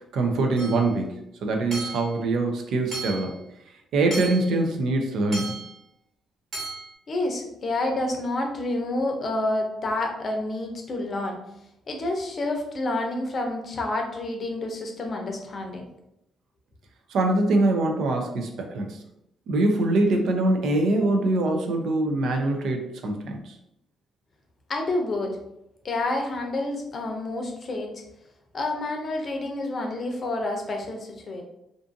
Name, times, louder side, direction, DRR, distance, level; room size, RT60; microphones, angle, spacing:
voice 1, 0.0-3.4 3.9-5.6 17.1-19.0 19.5-23.6, right 2 dB, 75° right, 3 dB, 0.5 m, -24 dB
Hammer / Chink clink, 0.6-0.9 1.7-2.1 2.9-3.3 4.1-4.5 5.3-5.7 6.5-6.9, right 3 dB, 50° right, 1.2 m, -35 dB
voice 2, 7.1-11.4 11.9-15.9 24.7-25.4 25.8-28.0 28.5-31.4, left 2 dB, 45° left, 3 dB, 0.6 m, -29 dB
2.5 x 2.5 x 2.5 m, 0.82 s
cardioid pair, 90°, 0 cm